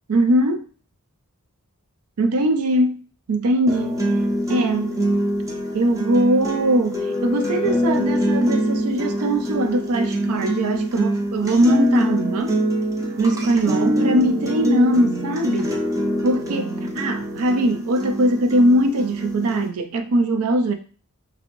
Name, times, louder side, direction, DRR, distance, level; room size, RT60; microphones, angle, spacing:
voice 1, 0.1-0.7 2.2-4.0 4.5-5.0 5.7-12.6 13.2-15.8 16.2-20.7, right 1 dB, 80° right, 0.4 m, -21 dB
sound 1, 3.7-19.7, equal, 15° right, 0.5 m, -24 dB
sound 2, 6.0-8.9, left 5 dB, 30° left, 0.6 m, -32 dB
3.0 x 2.6 x 2.9 m
head